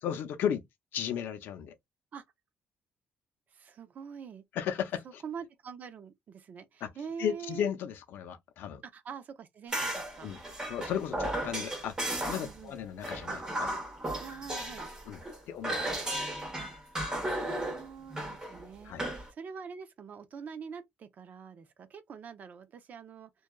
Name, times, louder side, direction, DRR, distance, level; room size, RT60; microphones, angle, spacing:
voice 1, 0.0-0.6 0.9-1.7 4.5-5.2 6.8-6.9 7.2-8.8 10.2-10.4 10.7-13.7 15.1-16.0 18.8-19.0, left 9 dB, 75° left, 0.6 m, -35 dB
voice 2, 3.5-4.4 5.2-7.7 8.9-10.3 12.4-12.7 14.2-14.9 16.6-17.0 17.3-23.3, right 6 dB, 50° right, 0.6 m, -45 dB
sound 1, 9.7-12.6 13.0-15.4 15.6-19.3, right 1 dB, 20° right, 1.1 m, -35 dB
2.7 x 2.3 x 2.3 m
cardioid pair, 110°, 4 cm